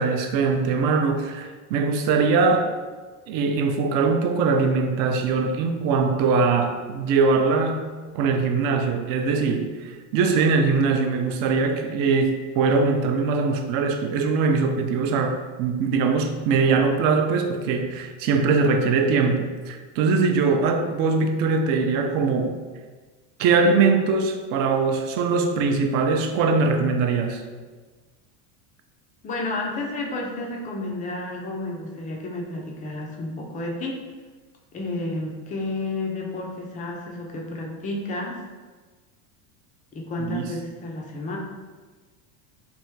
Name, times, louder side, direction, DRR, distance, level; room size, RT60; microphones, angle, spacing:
voice 1, 0.0-2.7 3.3-7.9 8.1-22.6 23.4-27.4 40.2-40.5, right 4 dB, 50° right, 5 dB, 0.5 m, -22 dB
voice 2, 29.2-34.0 34.7-38.4 39.9-41.4, left 2 dB, 20° left, -1 dB, 0.3 m, -31 dB
3.4 x 2.6 x 4.5 m, 1.3 s
cardioid pair, 140°, 47 cm